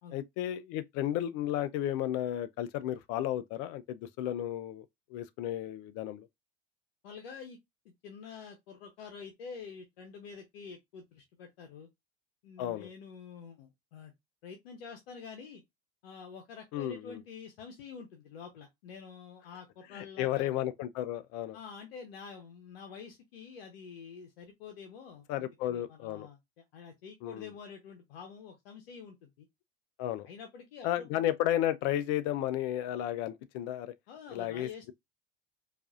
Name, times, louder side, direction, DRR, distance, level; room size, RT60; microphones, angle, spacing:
voice 1, 0.1-6.3 12.6-12.9 16.7-17.2 19.9-21.6 25.3-26.3 27.2-27.5 30.0-30.3 30.8-33.9 34.3-34.9, left 12 dB, 55° left, 0.6 m, -33 dB
voice 2, 7.0-7.6 7.8-11.9 12.4-14.1 14.4-15.6 16.0-20.5 21.5-29.5 30.3-31.3 34.1-34.8, left 6 dB, 70° left, 0.9 m, -47 dB
4.7 x 2.6 x 2.4 m
figure-of-eight pair, 70°, 30 cm